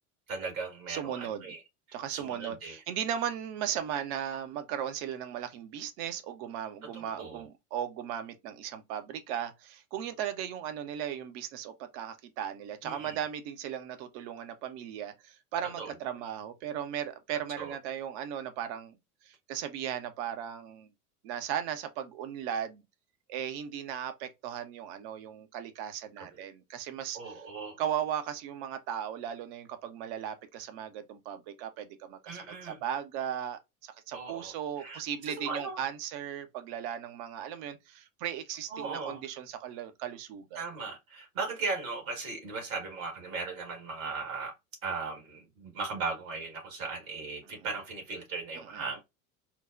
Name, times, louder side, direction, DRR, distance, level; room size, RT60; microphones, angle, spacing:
voice 1, 0.3-1.6 1.9-2.8 6.9-7.5 12.8-13.2 15.8-15.9 17.3-17.8 26.2-26.3 27.1-27.8 32.2-32.8 34.1-35.8 38.7-39.2 40.6-44.5 44.8-49.0, right 4 dB, 65° right, 1.7 m, -38 dB
voice 2, 0.9-1.4 1.9-19.0 19.2-20.9 21.2-22.8 23.3-27.2 27.8-40.6 48.7-48.8, right 9 dB, 45° right, 0.7 m, -37 dB
4.4 x 2.1 x 2.4 m
figure-of-eight pair, 80°, 45 cm